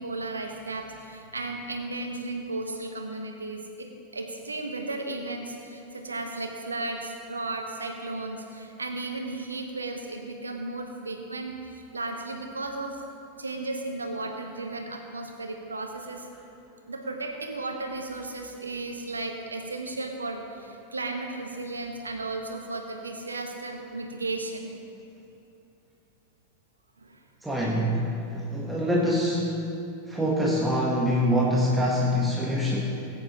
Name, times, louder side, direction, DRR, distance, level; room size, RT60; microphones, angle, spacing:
voice 1, 0.0-3.9 4.1-13.0 13.4-16.3 16.9-24.7 27.0-27.2, right 2 dB, 75° right, 3 dB, 1.3 m, -34 dB
voice 2, 27.4-28.1 28.3-29.6 30.1-32.8, equal, 5° right, -4 dB, 1.4 m, -24 dB
19.5 x 9.5 x 3.1 m, 2.7 s
figure-of-eight pair, 90°, 0 cm